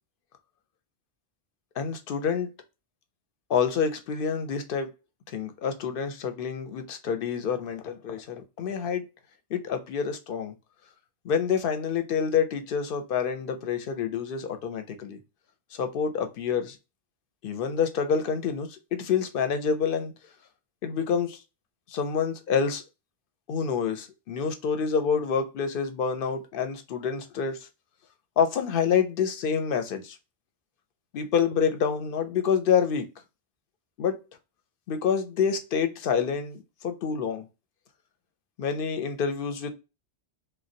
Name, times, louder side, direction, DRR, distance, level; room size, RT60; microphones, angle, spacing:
voice 1, 1.8-2.5 3.5-4.9 5.3-9.0 9.5-10.5 11.2-15.2 15.8-16.8 17.4-20.1 20.8-21.4 21.9-22.8 23.5-27.6 28.4-30.2 31.1-33.1 34.0-34.2 34.9-37.4 38.6-39.7, left 6 dB, 60° left, 0.7 m, -27 dB
3.2 x 2.2 x 2.6 m
omnidirectional pair, 1.1 m